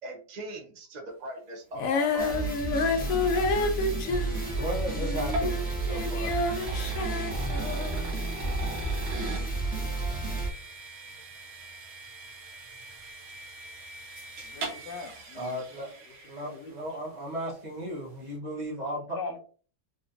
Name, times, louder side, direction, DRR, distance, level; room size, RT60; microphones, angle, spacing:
voice 1, 0.0-2.5, right 2 dB, 50° right, 1 dB, 0.5 m, -39 dB
Female singing, 1.7-8.1 8.8-8.9, left 3 dB, 90° left, 0.7 m, -29 dB
sound 1, 1.8-17.0, right 2 dB, 85° right, 1.8 m, -42 dB
sound 2, 2.2-10.5, right 3 dB, 10° left, 0.5 m, -31 dB
voice 2, 4.6-6.4 15.3-19.2, equal, 30° right, -6 dB, 0.8 m, -36 dB
voice 3, 14.4-15.6 16.4-16.9 19.1-19.4, left 4 dB, 70° left, 4 dB, 1.2 m, -40 dB
4.0 x 2.8 x 2.6 m, 0.41 s
omnidirectional pair, 2.1 m